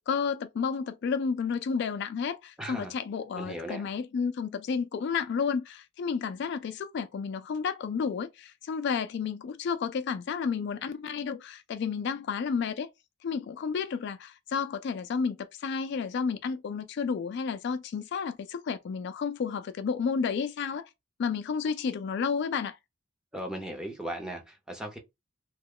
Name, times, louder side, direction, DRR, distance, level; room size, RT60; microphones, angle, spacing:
voice 1, 0.1-12.9 13.2-20.9 21.2-22.8, left 6 dB, 55° left, 0.3 m, -31 dB
voice 2, 2.6-2.9 3.4-3.9 23.3-25.0, right 1 dB, 5° right, 0.6 m, -37 dB
3.0 x 2.2 x 3.6 m
head